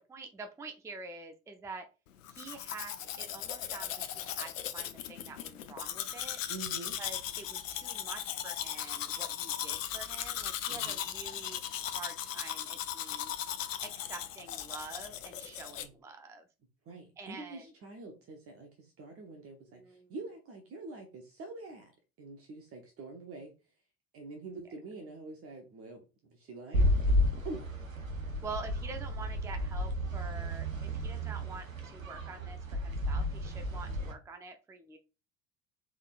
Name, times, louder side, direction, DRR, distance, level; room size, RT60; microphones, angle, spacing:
voice 1, 0.1-1.9 2.3-6.4 7.0-11.6 11.9-13.3 13.8-16.5 17.2-17.7 19.6-20.1 28.4-35.0, right 3 dB, 10° right, 6 dB, 0.5 m, -46 dB
Domestic sounds home sounds, 2.2-15.9, left 10 dB, 75° left, 0.5 m, -38 dB
voice 2, 6.5-7.0 10.7-11.0 15.8-15.9 16.8-21.9 22.2-23.5 24.1-26.9 27.4-27.8 33.9-34.0, right 3 dB, 35° right, 4 dB, 0.9 m, -46 dB
sound 1, 26.7-34.1, equal, 90° right, 0.6 m, -32 dB
3.7 x 3.5 x 2.4 m, 0.30 s
figure-of-eight pair, 65°, 39 cm